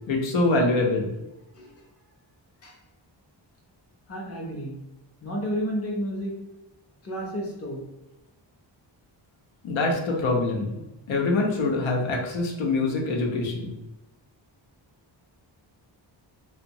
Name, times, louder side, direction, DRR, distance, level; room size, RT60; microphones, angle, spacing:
voice 1, 0.1-1.1 9.6-10.8 11.1-13.7, left 2 dB, 85° left, 0 dB, 0.7 m, -24 dB
voice 2, 4.1-4.8 5.2-6.3 7.0-7.8, equal, 35° left, -1 dB, 0.6 m, -31 dB
2.8 x 2.1 x 2.6 m, 0.98 s
wide cardioid pair, 160°, 46 cm